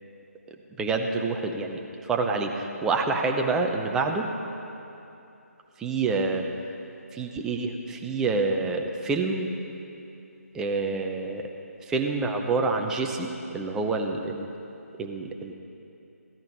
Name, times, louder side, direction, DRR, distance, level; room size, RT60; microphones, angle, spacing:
voice 1, 0.8-4.3 5.8-6.4 7.1-9.5 10.5-11.5 11.9-14.5 15.0-15.5, right 3 dB, 5° right, 3 dB, 0.6 m, -27 dB
16.0 x 13.0 x 5.2 m, 2.8 s
figure-of-eight pair, 150°, 8 cm